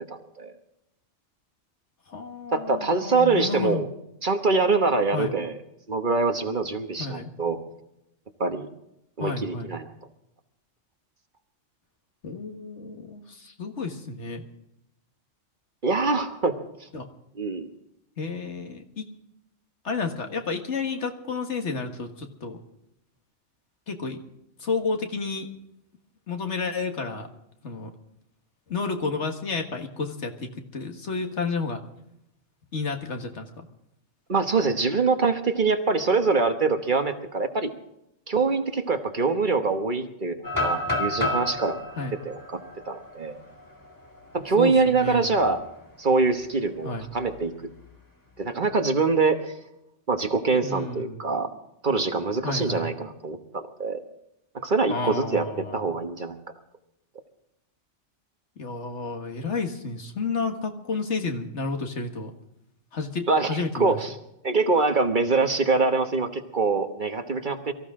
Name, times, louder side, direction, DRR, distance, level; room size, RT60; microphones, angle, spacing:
voice 1, 0.1-0.5 2.5-3.9 4.2-5.5 5.9-7.6 8.4-8.7 9.2-9.9 15.8-16.6 17.4-17.7 34.3-37.7 38.3-41.8 42.2-42.6 42.9-43.4 44.3-45.6 46.0-47.5 48.4-49.5 50.1-51.5 51.8-54.0 54.6-56.4 63.3-64.1 64.4-67.7, right 4 dB, 45° right, 7 dB, 1.3 m, -24 dB
voice 2, 2.1-3.9 5.1-5.3 7.0-7.3 9.2-9.7 12.2-14.4 16.9-17.1 18.2-19.1 19.8-22.6 23.9-24.2 24.6-25.5 26.3-27.3 27.6-27.9 28.7-31.9 32.7-33.7 42.0-42.2 44.6-45.3 46.8-47.1 50.6-51.2 52.4-52.9 54.9-55.9 58.6-62.3 62.9-64.0, left 4 dB, 70° left, 4 dB, 1.9 m, -31 dB
sound 1, 40.4-44.3 44.8-44.9 45.4-45.7 47.0-47.9, left 1 dB, 15° left, 2.3 m, -31 dB
23.5 x 14.5 x 3.7 m, 0.83 s
omnidirectional pair, 1.2 m